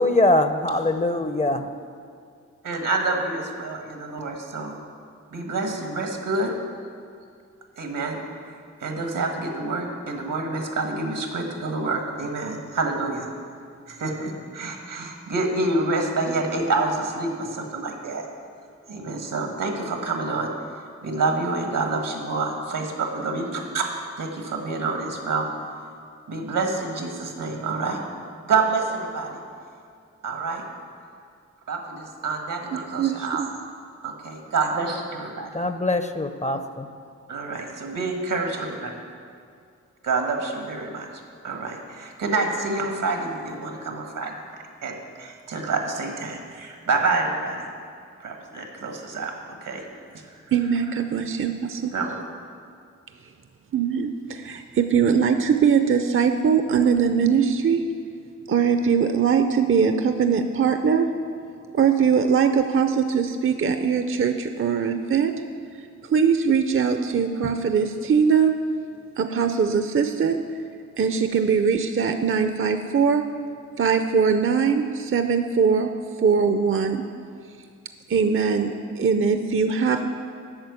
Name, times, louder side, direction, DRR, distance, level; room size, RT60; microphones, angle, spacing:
voice 1, 0.0-1.6 35.5-36.9, left 2 dB, 25° left, 8 dB, 0.6 m, -22 dB
voice 2, 2.6-4.7 5.3-6.5 7.8-8.2 8.5-13.3 13.9-18.2 18.8-20.5 21.0-25.5 26.3-28.0 28.4-29.4 30.2-30.6 31.7-33.4 34.0-35.5 37.3-38.9 40.0-41.1 41.4-47.7 48.2-49.3 49.6-49.8 50.1-50.4 51.9-52.1, right 3 dB, 85° right, 2 dB, 1.6 m, -27 dB
voice 3, 32.7-33.1 50.5-51.9 53.7-57.8 58.5-61.1 61.7-65.3 66.1-68.5 69.2-70.4 71.0-73.2 73.8-75.9 76.2-77.0 78.1-80.1, right 6 dB, 45° right, 8 dB, 0.5 m, -21 dB
8.8 x 6.3 x 8.3 m, 2.3 s
cardioid pair, 70°, 31 cm